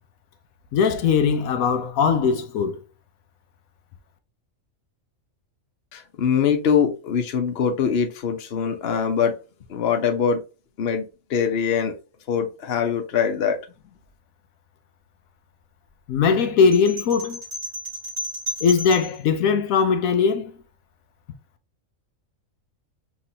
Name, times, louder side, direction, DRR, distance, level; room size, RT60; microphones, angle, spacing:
voice 1, 0.7-2.8 16.1-17.4 18.6-20.5, left 6 dB, 85° left, 1.1 m, -20 dB
voice 2, 5.9-9.3 9.7-10.4 10.8-11.9 12.3-13.6, left 7 dB, 50° left, 1.0 m, -23 dB
sound 1, 16.7-19.2, equal, 65° right, 2.9 m, -33 dB
5.7 x 2.9 x 2.8 m
omnidirectional pair, 1.4 m